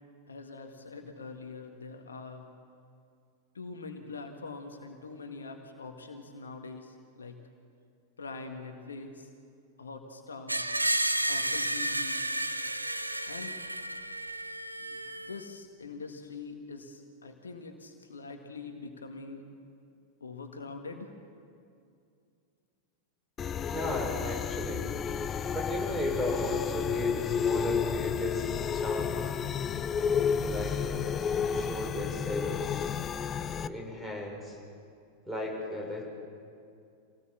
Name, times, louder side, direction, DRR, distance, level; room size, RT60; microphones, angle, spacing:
voice 1, 0.3-2.5 3.5-7.4 8.2-9.3 9.8-10.7 11.3-12.3 13.2-13.6 14.8-19.4 20.2-21.1, left 4 dB, 70° left, 5 dB, 1.7 m, -44 dB
Screech, 10.5-15.4, right 1 dB, 85° right, 0.7 m, -32 dB
sound 1, 23.4-33.7, left 7 dB, 25° left, 0.6 m, -31 dB
voice 2, 23.7-24.8 25.5-29.4 30.4-32.6 33.6-34.6 35.3-36.0, left 1 dB, 5° right, -1 dB, 6.2 m, -35 dB
26.0 x 18.5 x 7.3 m, 2.4 s
figure-of-eight pair, 90°, 0 cm